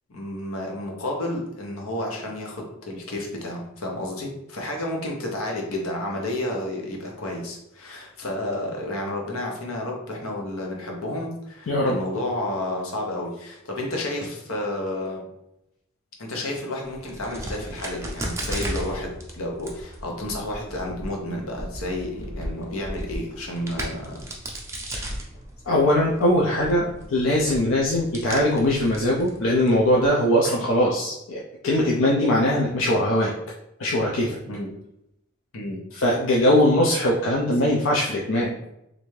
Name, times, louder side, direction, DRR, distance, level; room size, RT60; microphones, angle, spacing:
voice 1, 0.1-15.2 16.2-24.3 34.5-34.7 35.5-35.8, left 1 dB, 85° left, 0 dB, 0.9 m, -31 dB
voice 2, 11.7-12.0 24.9-25.1 25.7-33.3 33.8-34.4 35.9-38.5, left 1 dB, 65° left, -3 dB, 0.4 m, -21 dB
Crack, 16.9-30.1, right 1 dB, 15° right, 0.4 m, -36 dB
3.3 x 2.6 x 3.1 m, 0.84 s
head